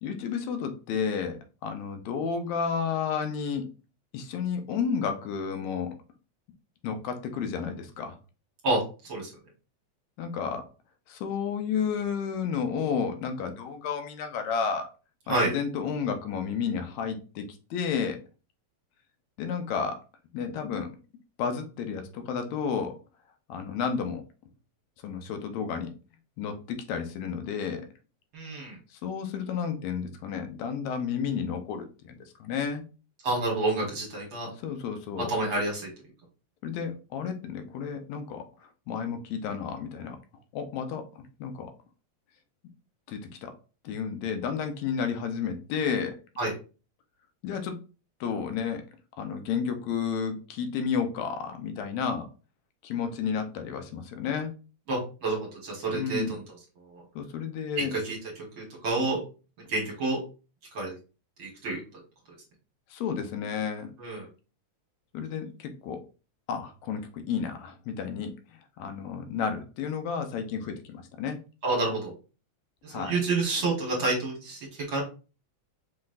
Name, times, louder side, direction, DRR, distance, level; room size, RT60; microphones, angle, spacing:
voice 1, 0.0-3.7 4.1-6.0 6.8-8.2 10.2-10.7 11.1-14.9 15.3-18.2 19.4-20.0 20.3-20.9 21.4-23.0 23.5-24.2 25.0-25.9 26.4-27.9 28.9-32.8 34.6-35.3 36.6-40.2 40.5-41.7 43.1-43.5 43.8-46.2 47.4-47.8 48.2-48.8 49.2-52.3 52.8-54.5 55.9-56.3 57.2-57.9 62.9-63.9 65.1-66.0 66.5-71.4 72.9-73.2, left 6 dB, 85° left, 6 dB, 2.0 m, -32 dB
voice 2, 8.6-9.3 15.3-15.5 28.3-28.8 33.2-34.5 35.3-35.9 46.4-46.5 54.9-56.4 56.8-57.0 57.8-58.2 58.6-59.2 59.7-60.2 60.7-60.9 61.4-61.8 64.0-64.3 71.6-72.1 72.8-75.0, right 2 dB, 50° right, -2 dB, 2.0 m, -29 dB
5.8 x 3.1 x 2.5 m, 0.34 s
omnidirectional pair, 3.3 m